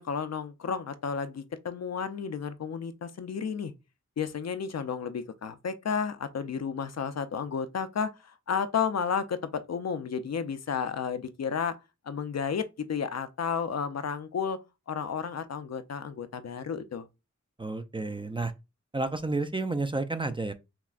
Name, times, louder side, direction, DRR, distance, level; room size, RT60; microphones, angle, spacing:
voice 1, 0.0-3.7 4.2-11.8 12.1-14.6 14.9-17.1, left 6 dB, 60° left, 0.5 m, -32 dB
voice 2, 17.6-18.5 18.9-20.5, right 3 dB, 20° right, 0.3 m, -31 dB
5.7 x 2.1 x 2.4 m
wide cardioid pair, 80°, 29 cm